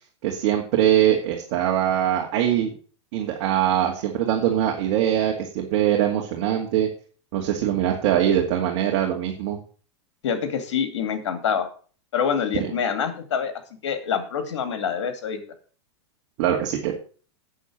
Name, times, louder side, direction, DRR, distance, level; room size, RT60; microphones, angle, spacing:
voice 1, 0.2-2.7 3.1-6.9 7.3-9.6 12.6-12.7 16.4-16.9, right 11 dB, 55° right, 1 dB, 2.2 m, -22 dB
voice 2, 10.2-11.7 12.1-13.5 13.8-15.4, left 7 dB, 80° left, 8 dB, 2.4 m, -26 dB
8.5 x 7.2 x 7.3 m, 0.42 s
hypercardioid pair, 120°, 15 cm